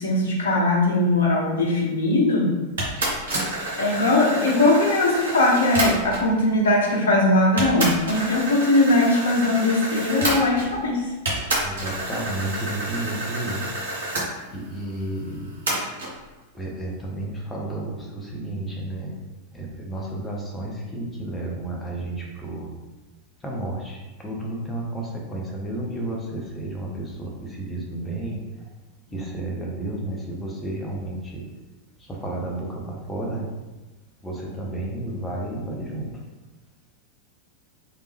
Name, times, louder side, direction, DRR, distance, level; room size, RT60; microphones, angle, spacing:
voice 1, 0.0-2.5 3.8-11.1, left 2 dB, 65° left, -3 dB, 0.8 m, -20 dB
sound 1, 2.8-6.3 7.1-7.2 7.6-10.9 11.3-14.3 15.7-16.1, right 1 dB, 65° right, 0.9 m, -28 dB
voice 2, 11.6-13.6 14.5-15.5 16.6-19.1 19.5-22.7 23.4-24.0 24.2-27.3 27.6-28.4 29.1-31.4 32.2-32.7 33.1-33.5 34.2-36.1, right 1 dB, 15° left, -1 dB, 0.7 m, -31 dB
3.1 x 2.0 x 3.3 m, 1.1 s
figure-of-eight pair, 90°, 0 cm